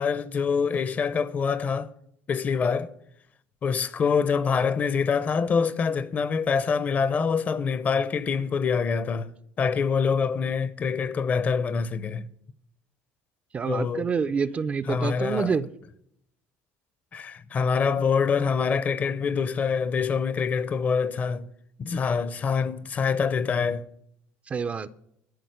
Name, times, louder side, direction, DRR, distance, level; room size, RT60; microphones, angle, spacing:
voice 1, 0.0-1.9 2.3-2.9 3.6-9.3 9.6-12.3 13.7-14.1 14.8-15.5 17.1-21.5 21.8-23.8, left 6 dB, 30° left, 0.7 m, -25 dB
voice 2, 13.5-15.7 24.5-24.9, right 5 dB, 25° right, 0.5 m, -27 dB
12.5 x 6.2 x 9.2 m
cardioid pair, 135°, 5 cm